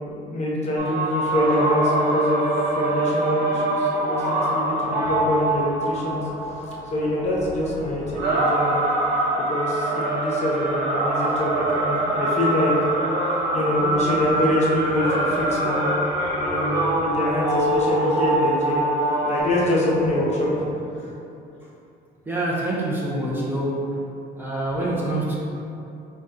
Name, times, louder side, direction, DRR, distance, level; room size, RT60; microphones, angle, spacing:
voice 1, 0.1-6.3 6.9-8.9 9.4-12.9 13.5-15.9 16.3-18.9 19.2-20.6 21.0-21.1, left 1 dB, 40° left, -5 dB, 0.9 m, -25 dB
sound 1, 0.8-19.4, right 1 dB, 70° right, 0.9 m, -24 dB
voice 2, 22.2-24.0 24.4-25.4, right 1 dB, 10° right, -6 dB, 0.6 m, -26 dB
4.0 x 2.3 x 3.8 m, 2.8 s
cardioid pair, 110°, 17 cm